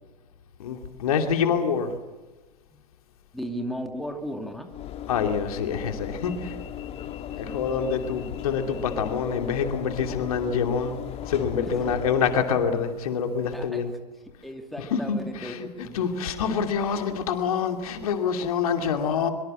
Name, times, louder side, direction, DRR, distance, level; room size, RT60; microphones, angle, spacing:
voice 1, 0.6-1.9 5.1-6.5 7.4-11.0 11.3-13.9 14.9-19.3, left 6 dB, 60° left, 5 dB, 2.7 m, -26 dB
voice 2, 3.3-4.7 7.3-7.6 11.6-12.0 13.5-13.9 14.4-16.1, equal, ahead, 4 dB, 2.4 m, -36 dB
Train / Engine / Alarm, 4.7-12.9, left 10 dB, 30° left, 1.8 m, -37 dB
23.5 x 23.5 x 7.8 m, 1.2 s
figure-of-eight pair, 95°, 21 cm